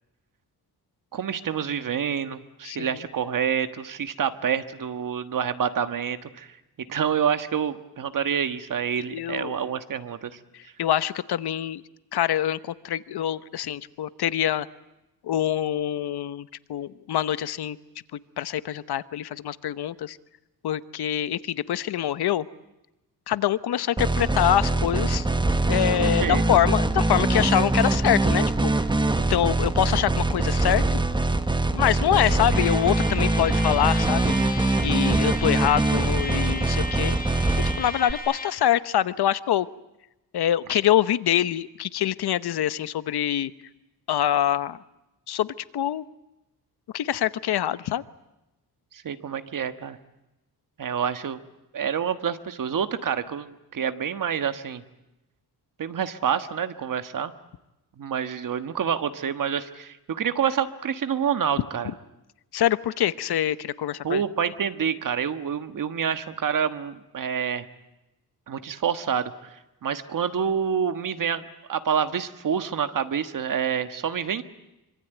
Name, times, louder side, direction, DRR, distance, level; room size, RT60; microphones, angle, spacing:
voice 1, 1.1-6.5 6.9-10.3 25.9-26.4 49.0-50.0 50.8-51.4 51.7-54.8 55.8-57.3 58.0-61.9 64.0-67.6 68.5-71.4 71.7-74.4, right 7 dB, 55° right, 10 dB, 1.5 m, -27 dB
voice 2, 2.6-3.0 9.1-9.6 10.5-11.8 12.1-14.7 15.2-17.8 18.4-20.2 20.6-22.5 23.3-25.3 25.6-28.7 29.3-31.0 31.7-34.3 34.8-37.2 37.8-39.7 40.3-43.5 44.1-44.8 45.3-46.0 46.9-48.0 62.5-64.2, left 11 dB, 80° left, 15 dB, 0.9 m, -25 dB
sound 1, 24.0-38.1, right 2 dB, 10° right, 1.0 m, -23 dB
Trumpet, 32.5-38.6, left 2 dB, 25° left, 5.0 m, -36 dB
25.5 x 25.0 x 9.1 m, 0.95 s
wide cardioid pair, 155°, 38 cm